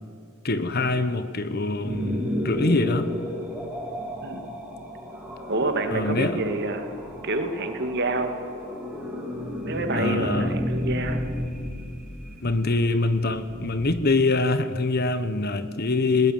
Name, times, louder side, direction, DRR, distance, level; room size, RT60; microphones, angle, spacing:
voice 1, 0.4-3.1 5.9-6.4 9.9-10.5 12.4-16.3, left 3 dB, 45° left, 12 dB, 1.2 m, -24 dB
sound 1, 1.8-14.0, equal, ahead, 6.2 m, -32 dB
voice 2, 5.5-6.9 7.2-8.3 9.6-11.2, right 2 dB, 50° right, 6 dB, 2.4 m, -27 dB
20.5 x 20.0 x 9.4 m, 2.2 s
head